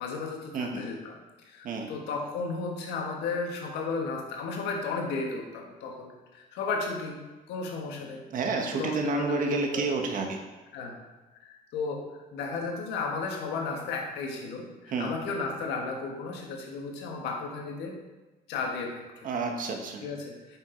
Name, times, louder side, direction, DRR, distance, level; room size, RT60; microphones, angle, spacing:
voice 1, 0.0-7.2 7.5-8.2 8.7-9.9 10.7-11.0 11.4-12.0 12.3-18.0 18.5-19.3 20.0-20.6, left 4 dB, 90° left, 2 dB, 1.5 m, -34 dB
voice 2, 0.5-0.8 1.6-1.9 8.3-10.4 14.9-15.1 19.2-20.0, right 3 dB, 55° right, 3 dB, 1.5 m, -29 dB
8.9 x 6.3 x 3.9 m, 1.2 s
cardioid pair, 110°, 17 cm